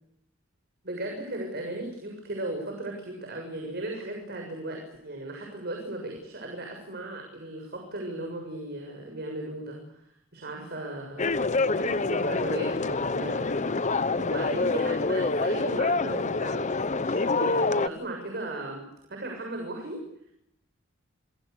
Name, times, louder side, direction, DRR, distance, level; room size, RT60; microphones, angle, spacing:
voice 1, 0.8-20.0, right 1 dB, 55° right, 2 dB, 7.2 m, -37 dB
sound 1, 11.2-17.9, left 3 dB, 35° left, 1.0 m, -26 dB
29.5 x 23.0 x 6.9 m, 0.78 s
head